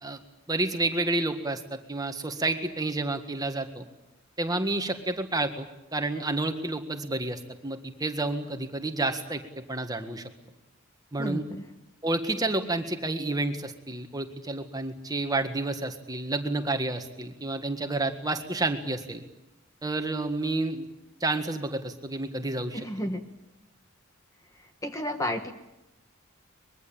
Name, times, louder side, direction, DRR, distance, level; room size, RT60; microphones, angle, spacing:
voice 1, 0.5-3.8 4.4-5.7 5.9-10.3 11.1-11.4 12.0-19.2 19.8-20.9 21.2-22.8, right 2 dB, 15° right, 7 dB, 1.7 m, -30 dB
voice 2, 11.2-11.7 22.7-23.2 24.5-25.5, left 1 dB, 15° left, 6 dB, 1.3 m, -32 dB
24.0 x 22.0 x 8.8 m, 0.95 s
head